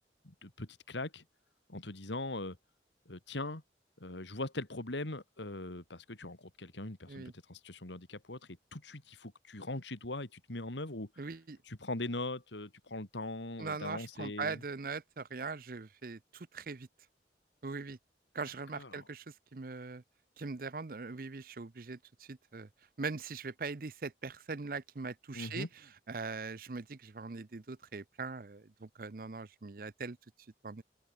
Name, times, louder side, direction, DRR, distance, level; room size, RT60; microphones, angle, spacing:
voice 1, 0.2-1.2 1.7-2.6 3.1-3.6 4.0-8.4 8.7-11.1 11.7-14.6 18.7-19.0 25.3-25.7, left 2 dB, 90° left, 2.7 m, -41 dB
voice 2, 11.2-11.6 13.6-16.9 17.6-18.0 18.3-20.0 20.4-22.7 23.0-25.7 26.1-30.2 30.6-30.8, right 4 dB, 50° right, 0.7 m, -41 dB
open air
head